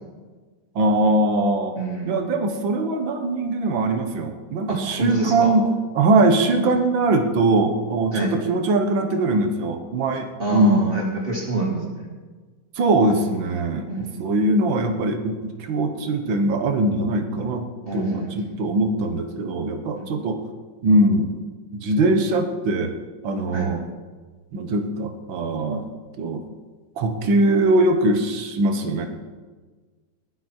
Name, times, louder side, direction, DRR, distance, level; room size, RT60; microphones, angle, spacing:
voice 1, 0.8-1.8 2.1-10.8 12.8-17.7 17.9-20.4 20.8-21.4 21.7-22.9 23.2-23.8 24.5-25.9 26.2-26.4 27.0-29.1, right 2 dB, 80° right, 5 dB, 2.1 m, -21 dB
voice 2, 1.8-2.3 4.7-5.5 6.6-6.8 8.1-8.3 10.4-12.1 13.0-13.4 13.9-14.3 17.9-18.6 20.0-20.1 23.5-23.7, right 2 dB, 30° right, -1 dB, 2.7 m, -27 dB
19.5 x 12.0 x 4.5 m, 1.4 s
omnidirectional pair, 2.1 m